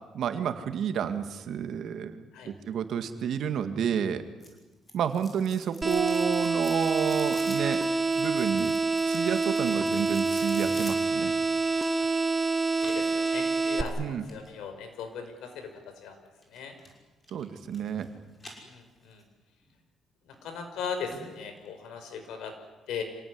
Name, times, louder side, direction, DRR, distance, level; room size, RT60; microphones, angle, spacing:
voice 1, 0.0-4.2 4.9-7.8 8.2-8.7 9.1-11.4 14.0-14.2 17.3-18.1, right 8 dB, 65° right, 8 dB, 2.2 m, -30 dB
sound 1, 4.4-12.2 12.8-14.5 16.4-16.9 17.2-18.1 18.4-19.2 19.6-19.7 20.3-20.4 20.7-20.8 21.1-21.2 21.6-21.7, left 1 dB, 25° left, 6.1 m, -48 dB
sound 2, 5.8-13.8, right 3 dB, 25° right, 1.5 m, -27 dB
voice 2, 12.8-16.2 16.5-16.7 18.6-19.2 20.3-22.5 22.9-23.0, left 6 dB, 90° left, 6 dB, 5.2 m, -38 dB
26.5 x 18.0 x 9.8 m, 1.2 s
cardioid pair, 120°, 0 cm